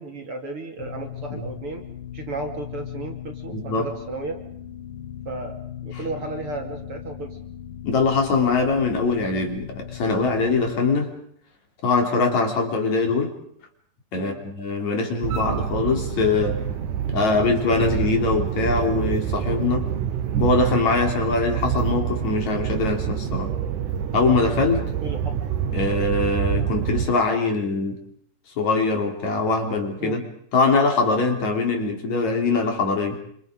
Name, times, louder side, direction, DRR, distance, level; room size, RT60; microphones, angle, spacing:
voice 1, 0.0-1.8 2.1-4.4 5.2-5.6 5.8-7.4 14.1-14.5 25.0-25.3 30.0-30.2, right 3 dB, 40° right, 3 dB, 3.1 m, -34 dB
sound 1, 0.8-10.8, left 10 dB, 75° left, 3.0 m, -38 dB
voice 2, 3.5-3.9 7.8-11.1 11.8-13.3 14.1-16.6 17.1-19.9 20.4-23.5 24.1-24.9 25.7-28.0 28.6-30.2 30.5-33.2, left 3 dB, 55° left, 3 dB, 4.5 m, -22 dB
sound 2, 15.2-27.1, right 9 dB, 65° right, 2.9 m, -27 dB
27.5 x 27.0 x 5.1 m, 0.68 s
omnidirectional pair, 4.0 m